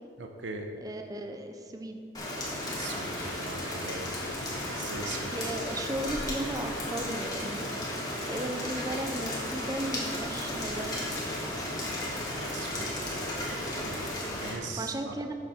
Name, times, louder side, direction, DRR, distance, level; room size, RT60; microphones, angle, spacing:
voice 1, 0.2-0.7 2.8-4.3 4.6-5.6 12.3-15.3, right 3 dB, 85° right, 4 dB, 0.8 m, -41 dB
voice 2, 0.8-2.0 5.3-7.6 8.3-11.0 11.2-11.6 14.8-15.3, right 1 dB, 20° right, 6 dB, 0.5 m, -36 dB
Rain, 2.1-14.5, left 1 dB, 20° left, 1.7 m, -34 dB
7.9 x 7.0 x 5.7 m, 2.2 s
head